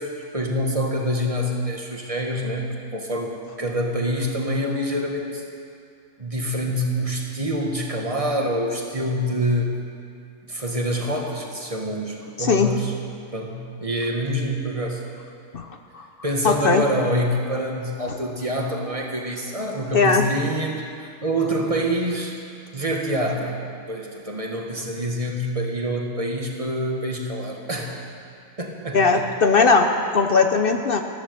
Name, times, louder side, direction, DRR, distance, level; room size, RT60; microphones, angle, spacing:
voice 1, 0.0-5.4 6.2-9.8 10.4-12.9 13.3-15.0 16.2-22.4 22.7-28.0 28.6-29.3, equal, 25° right, 0 dB, 1.6 m, -26 dB
voice 2, 12.4-12.7 15.5-15.7 15.9-16.0 16.4-16.8 19.9-20.3 28.9-29.9 30.1-31.0, left 4 dB, 50° left, 5 dB, 0.8 m, -18 dB
14.0 x 11.5 x 6.8 m, 2.4 s
omnidirectional pair, 1.4 m